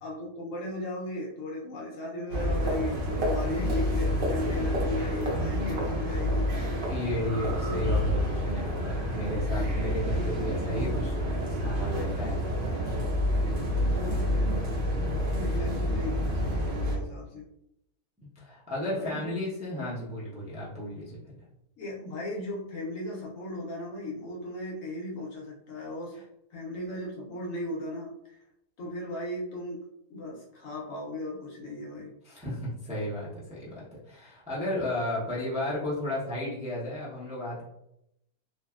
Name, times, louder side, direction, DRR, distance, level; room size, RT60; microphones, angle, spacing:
voice 1, 0.0-6.5 7.6-8.1 13.4-13.6 14.0-14.6 15.0-17.5 18.9-19.3 21.8-26.2 26.5-28.4 28.8-29.8 30.1-32.2, left 1 dB, 65° left, -3 dB, 0.9 m, -37 dB
sound 1, 2.3-17.0, equal, 55° right, 0.6 m, -28 dB
voice 2, 6.9-11.2 11.6-13.0 18.4-21.2 32.2-37.6, left 1 dB, 10° right, -7 dB, 0.3 m, -33 dB
2.9 x 2.6 x 2.3 m, 0.81 s
omnidirectional pair, 1.7 m